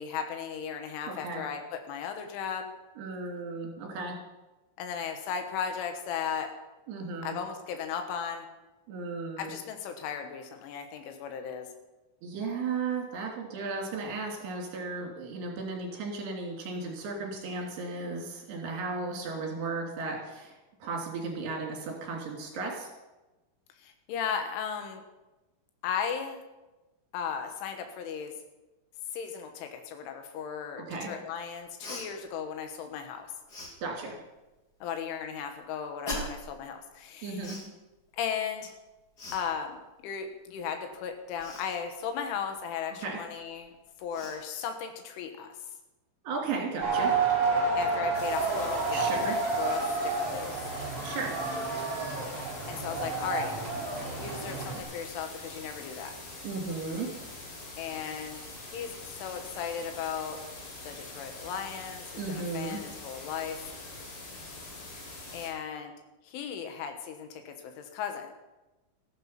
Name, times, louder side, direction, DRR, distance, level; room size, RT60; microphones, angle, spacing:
voice 1, 0.0-2.7 4.8-6.5 7.2-8.5 9.4-11.7 23.8-25.0 25.8-26.4 27.1-28.3 29.1-33.3 34.8-37.4 38.1-38.7 39.3-43.7 44.0-45.5 47.8-50.5 52.2-53.6 54.2-56.1 57.8-58.4 58.7-60.4 60.9-63.7 65.3-65.9 66.3-68.3, left 7 dB, 90° left, 6 dB, 3.8 m, -36 dB
voice 2, 1.1-1.4 3.0-4.2 6.9-7.4 8.9-9.5 12.2-22.9 30.8-31.1 33.8-34.2 37.2-37.6 43.0-43.2 46.2-47.1 48.9-49.4 51.0-51.3 56.4-57.1 62.2-62.8, right 4 dB, 65° right, 0 dB, 5.2 m, -35 dB
Cough, 31.8-32.1 33.5-33.7 36.0-36.5 37.4-37.7 39.2-39.4 41.4-41.7 43.5-43.6 44.1-44.4, left 1 dB, 35° left, 1.6 m, -38 dB
sound 1, 46.8-54.8, right 4 dB, 35° right, 5.0 m, -30 dB
sound 2, 48.1-65.5, left 2 dB, 50° left, 5.1 m, -44 dB
14.5 x 12.5 x 5.9 m, 1.0 s
omnidirectional pair, 5.4 m